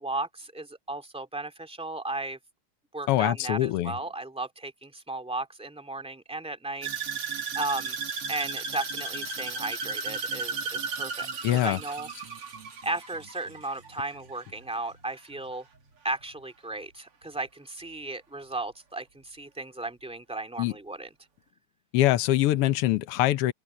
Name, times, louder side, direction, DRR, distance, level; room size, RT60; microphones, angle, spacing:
voice 1, 0.0-2.4 2.9-8.0 8.3-12.4 12.8-15.6 16.0-21.1, right 2 dB, ahead, 2.0 m, -35 dB
voice 2, 3.1-3.9 11.4-11.8 20.6-20.7 21.9-23.5, left 14 dB, 80° left, 1.3 m, -23 dB
sound 1, 6.8-15.0 15.3-15.8 16.2-16.3, right 5 dB, 45° right, 3.4 m, -35 dB
omnidirectional pair, 3.6 m